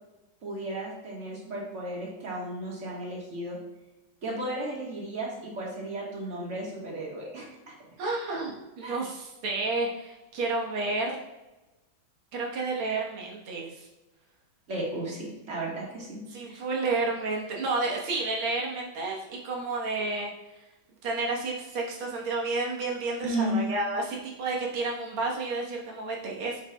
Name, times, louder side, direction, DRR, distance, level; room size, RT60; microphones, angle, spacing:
voice 1, 0.4-3.6 4.2-7.7 8.4-8.5 8.8-9.0 14.7-16.6 23.2-23.6, right 1 dB, 35° right, -3 dB, 1.7 m, -34 dB
voice 2, 8.0-11.2 12.3-13.9 16.3-20.3 21.0-26.6, right 3 dB, 90° right, -2 dB, 2.1 m, -31 dB
7.5 x 6.3 x 2.2 m, 1.0 s
omnidirectional pair, 2.3 m